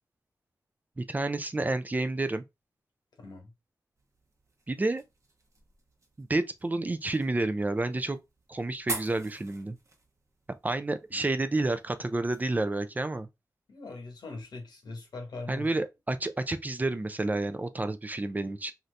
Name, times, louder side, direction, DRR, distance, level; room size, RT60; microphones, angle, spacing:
voice 1, 1.0-2.4 4.7-5.0 6.2-8.2 8.5-9.8 10.6-13.3 15.5-18.7, right 2 dB, 25° right, 0.4 m, -30 dB
voice 2, 3.2-3.5 11.1-11.2 13.7-15.7, left 3 dB, 90° left, 1.2 m, -41 dB
sound 1, 4.0-12.4, right 2 dB, 45° right, 0.9 m, -45 dB
2.7 x 2.6 x 3.2 m
wide cardioid pair, 85°, 7 cm